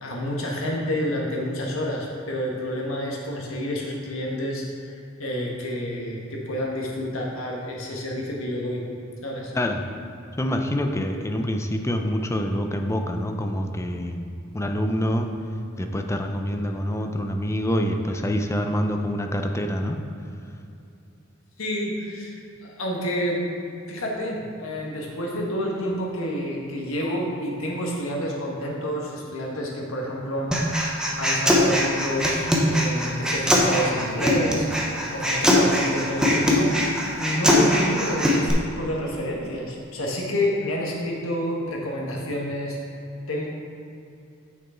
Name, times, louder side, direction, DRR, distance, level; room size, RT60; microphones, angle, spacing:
voice 1, 0.0-8.8 9.2-9.5 21.6-23.6 23.9-30.5 31.2-34.7 35.1-36.8 37.2-42.8 43.3-43.5, equal, 80° left, -2 dB, 1.4 m, -29 dB
voice 2, 9.5-9.9 10.4-15.3 15.8-20.0, equal, 15° left, 5 dB, 0.4 m, -26 dB
Human voice, 30.5-38.5, left 1 dB, 5° right, 0.8 m, -21 dB
6.7 x 6.2 x 4.4 m, 2.6 s
head